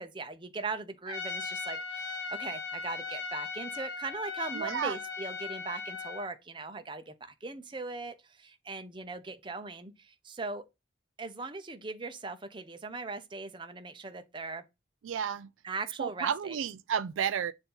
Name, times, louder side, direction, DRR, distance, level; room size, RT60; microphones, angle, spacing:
voice 1, 0.0-10.6 11.2-14.6 15.6-16.6, right 3 dB, 25° right, 0.6 m, -39 dB
Trumpet, 1.1-6.3, left 4 dB, 65° left, 1.4 m, -38 dB
voice 2, 4.5-5.0 15.0-15.5 16.0-17.5, right 8 dB, 85° right, 0.4 m, -32 dB
6.8 x 2.6 x 5.5 m
head